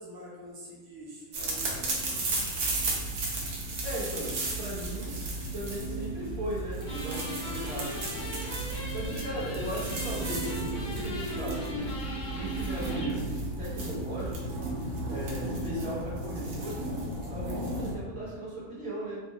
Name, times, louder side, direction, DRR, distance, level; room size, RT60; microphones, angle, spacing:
voice 1, 0.0-2.0 18.0-18.2, right 1 dB, 25° right, -5 dB, 0.4 m, -45 dB
sound 1, 1.3-17.9, right 2 dB, 90° right, 1.3 m, -34 dB
voice 2, 3.8-5.2 5.5-8.0 8.9-11.7 12.3-14.6 15.1-16.9 17.3-19.2, equal, 45° right, -9 dB, 1.2 m, -37 dB
sound 2, 6.8-13.2, left 1 dB, 50° left, 0.7 m, -39 dB
3.8 x 2.0 x 3.7 m, 1.4 s
omnidirectional pair, 1.6 m